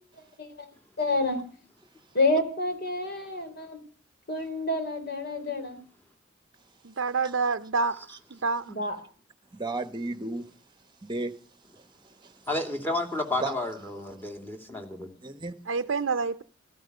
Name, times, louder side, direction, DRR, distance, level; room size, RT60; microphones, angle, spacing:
voice 1, 0.2-0.7 1.0-1.4 2.1-3.8 4.3-5.8 8.7-9.0, left 2 dB, 55° left, 3.9 m, -28 dB
voice 2, 6.8-8.0 8.3-8.7 15.7-16.4, right 4 dB, 70° right, 0.7 m, -27 dB
voice 3, 9.5-10.5 11.0-11.4 12.0-12.3 13.4-13.5 15.2-15.6, right 2 dB, 25° right, 1.2 m, -33 dB
voice 4, 12.5-15.1, left 2 dB, 10° left, 2.6 m, -31 dB
15.5 x 14.0 x 6.6 m
head